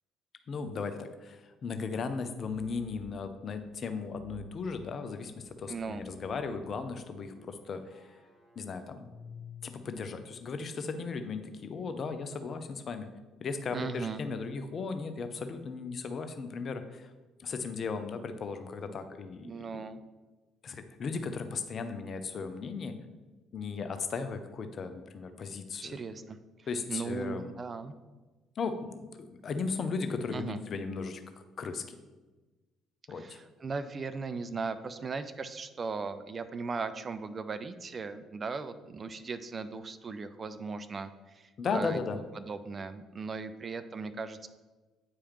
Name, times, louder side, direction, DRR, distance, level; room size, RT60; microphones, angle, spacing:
voice 1, 0.5-8.1 8.6-9.1 9.6-13.1 13.4-17.1 17.4-19.8 20.6-23.0 23.5-25.9 26.7-27.5 28.6-31.2 31.6-32.0 33.1-33.4 41.6-42.2, left 4 dB, 45° left, 8 dB, 0.6 m, -36 dB
sound 1, 4.0-10.1, left 1 dB, 15° right, 2.2 m, -53 dB
voice 2, 5.7-6.1 13.7-14.2 19.4-20.0 25.8-26.4 26.9-27.9 30.3-30.6 33.2-42.0 42.4-44.5, right 4 dB, 35° right, 11 dB, 0.4 m, -38 dB
8.5 x 4.8 x 3.0 m, 1.2 s
figure-of-eight pair, 50°, 0 cm